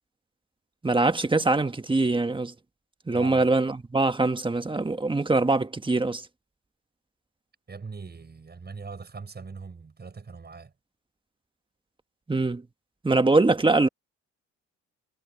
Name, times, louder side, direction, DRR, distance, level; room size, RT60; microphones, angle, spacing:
voice 1, 0.8-2.5 3.1-6.3 12.3-12.6 13.0-13.9, right 3 dB, 15° right, 1.5 m, -23 dB
voice 2, 3.1-3.5 7.7-10.7, right 4 dB, 35° right, 6.8 m, -41 dB
cardioid pair, 90°, 30 cm